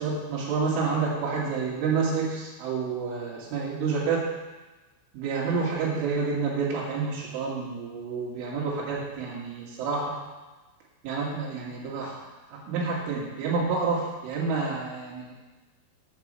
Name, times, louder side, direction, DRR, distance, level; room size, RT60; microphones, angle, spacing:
voice 1, 0.0-4.3 5.1-10.2 11.0-15.3, right 4 dB, 80° right, -4 dB, 4.7 m, -29 dB
10.5 x 5.5 x 7.5 m, 1.2 s
omnidirectional pair, 5.5 m